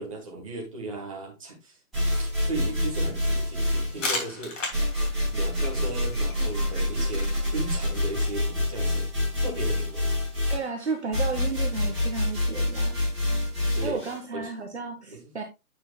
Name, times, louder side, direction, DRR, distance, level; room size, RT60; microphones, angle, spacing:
voice 1, 0.0-1.8 2.1-4.6 5.3-9.1 9.4-10.0 13.7-14.0 14.3-14.5 15.1-15.2, right 2 dB, 20° right, 1.5 m, -36 dB
sound 1, 1.9-4.2 4.7-14.2, left 1 dB, ahead, 3.8 m, -27 dB
sound 2, 3.7-9.2, left 2 dB, 55° left, 2.8 m, -38 dB
voice 2, 10.5-13.0 13.8-15.4, right 5 dB, 45° right, 0.8 m, -33 dB
8.7 x 6.1 x 2.3 m
hypercardioid pair, 180°, 46 cm